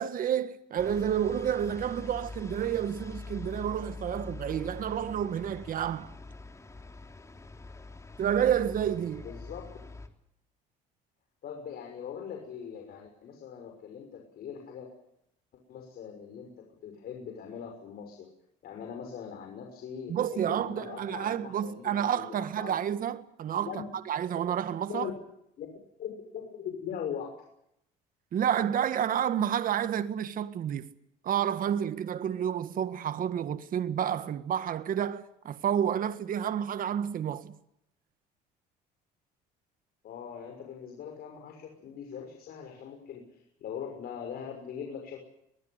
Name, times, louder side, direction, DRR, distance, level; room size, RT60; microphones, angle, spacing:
voice 1, 0.0-6.1 8.2-9.3 20.1-23.7 24.1-25.1 28.3-30.9 31.2-37.6, right 9 dB, 55° right, 1.7 m, -30 dB
sound 1, 0.8-10.1, left 3 dB, 15° left, 3.5 m, -44 dB
voice 2, 9.2-9.7 11.4-14.9 15.7-16.5 16.8-18.3 18.6-22.7 23.6-23.8 24.9-25.1 25.6-25.7 26.0-27.3 40.0-45.2, left 8 dB, 60° left, 6.3 m, -41 dB
23.0 x 20.0 x 8.1 m
cardioid pair, 95°, 18 cm